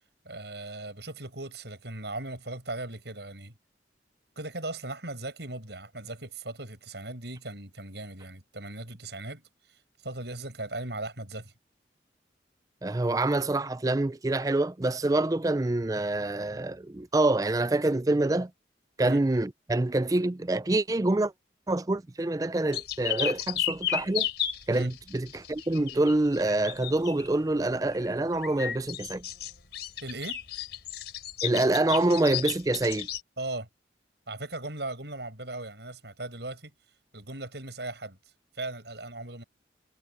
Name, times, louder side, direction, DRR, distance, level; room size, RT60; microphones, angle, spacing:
voice 1, 0.3-3.6 4.4-9.4 10.0-11.5 19.0-19.2 24.7-24.9 30.0-30.4 33.4-33.7 34.3-36.7 37.1-38.2 38.5-39.4, right 2 dB, 70° right, 7.1 m, -38 dB
voice 2, 12.8-18.5 19.0-21.3 21.7-24.3 24.7-29.2 31.4-33.1, right 2 dB, 20° right, 0.4 m, -26 dB
sound 1, 22.7-27.3 28.3-33.2, left 11 dB, 70° left, 3.5 m, -33 dB
head